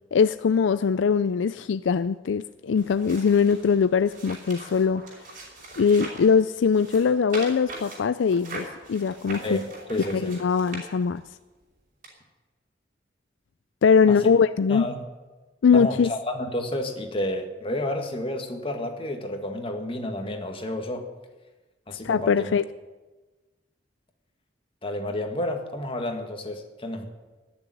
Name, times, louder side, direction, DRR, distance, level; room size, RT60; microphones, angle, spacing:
voice 1, 0.1-5.0 5.8-9.6 10.1-11.2 13.8-14.9 15.6-16.1 22.0-22.6, left 6 dB, 80° left, 0.4 m, -21 dB
sound 1, 2.8-6.3 6.7-11.3 12.0-12.1, right 2 dB, 45° right, 5.3 m, -41 dB
voice 2, 9.4-10.3 14.1-14.3 14.7-15.1 15.7-21.1 21.9-22.5 24.8-27.1, left 1 dB, 30° left, 2.0 m, -30 dB
18.5 x 7.0 x 9.9 m
head